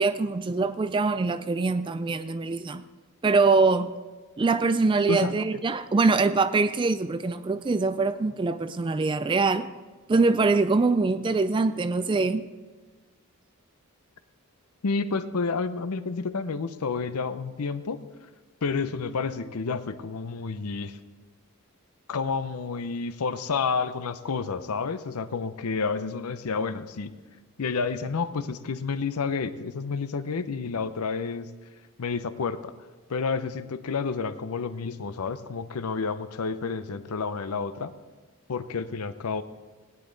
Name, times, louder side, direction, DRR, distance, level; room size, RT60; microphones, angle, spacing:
voice 1, 0.0-2.8 3.2-3.9 4.4-9.7 10.1-12.4, right 3 dB, 20° right, 12 dB, 0.3 m, -23 dB
voice 2, 14.8-18.0 18.6-21.0 22.1-27.1 27.6-31.5 32.0-32.7 33.1-37.9 38.5-39.4, left 4 dB, 85° left, 13 dB, 0.6 m, -30 dB
18.0 x 10.0 x 3.9 m, 1.3 s
head